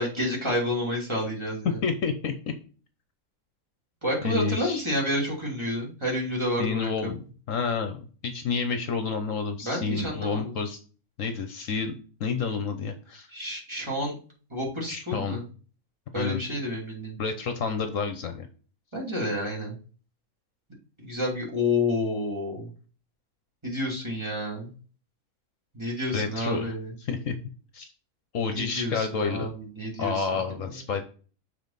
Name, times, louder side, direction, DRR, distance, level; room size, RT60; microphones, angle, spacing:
voice 1, 0.0-1.8 4.0-7.2 9.6-10.5 13.3-14.1 14.5-15.5 16.1-17.2 18.9-19.7 21.0-22.7 23.6-24.7 25.7-26.9 28.6-30.7, left 1 dB, 20° right, -3 dB, 2.8 m, -29 dB
voice 2, 1.8-2.3 4.2-4.8 6.6-7.2 7.5-10.8 11.2-11.9 12.2-13.3 14.9-15.4 16.2-16.4 17.2-18.5 26.0-26.7 27.0-27.3 27.7-27.9 28.3-29.5 30.0-31.0, left 5 dB, 65° left, 7 dB, 1.2 m, -29 dB
7.2 x 4.3 x 4.0 m, 0.39 s
omnidirectional pair, 1.5 m